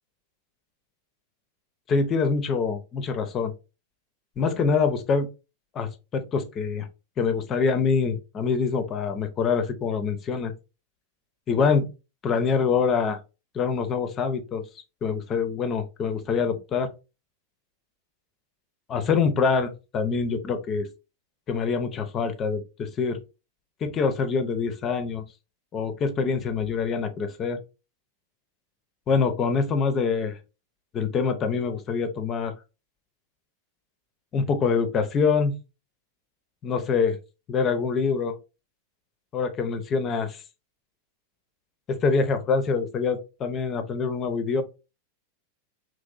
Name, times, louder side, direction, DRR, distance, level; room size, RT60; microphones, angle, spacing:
voice 1, 1.9-3.5 4.4-5.3 5.7-6.9 7.2-10.5 11.5-11.9 12.2-13.2 13.5-14.6 15.0-16.9 18.9-20.9 21.5-23.2 23.8-25.2 25.7-27.6 29.1-30.4 30.9-32.5 34.3-35.5 36.6-37.2 37.5-38.3 39.3-40.4 41.9-44.6, left 5 dB, 30° left, 9 dB, 0.4 m, -25 dB
3.0 x 2.6 x 2.4 m, 0.29 s
figure-of-eight pair, 90°, 0 cm